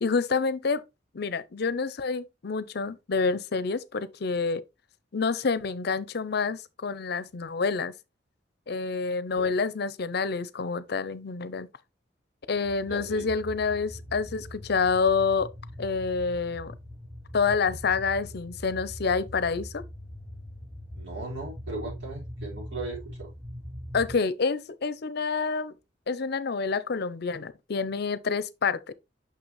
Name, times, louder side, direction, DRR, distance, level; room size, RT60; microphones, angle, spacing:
voice 1, 0.0-0.8 1.1-4.6 5.1-7.9 8.7-11.7 12.5-15.5 15.8-16.7 17.3-19.8 23.9-25.7 26.1-28.9, left 4 dB, 60° left, 0.6 m, -28 dB
sound 1, 12.5-24.2, equal, 10° right, 3.4 m, -42 dB
voice 2, 12.9-13.2 20.9-23.3, right 3 dB, 80° right, 4.6 m, -37 dB
6.1 x 5.9 x 3.1 m
head